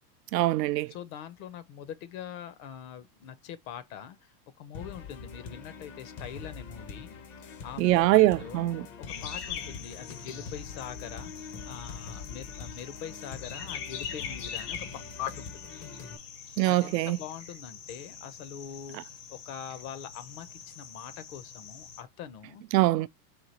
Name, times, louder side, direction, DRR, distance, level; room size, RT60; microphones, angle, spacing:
voice 1, 0.3-0.9 7.8-8.9 16.6-17.2 22.7-23.1, right 17 dB, 80° right, 0.6 m, -23 dB
voice 2, 0.9-4.3 4.6-7.1 7.5-15.7 16.6-19.0 19.3-22.6, left 9 dB, 60° left, 1.0 m, -43 dB
sound 1, 4.7-16.2, left 5 dB, 25° left, 0.6 m, -44 dB
sound 2, 9.1-22.0, left 7 dB, 75° left, 1.7 m, -43 dB
4.9 x 2.8 x 2.9 m
supercardioid pair, 135°, 49 cm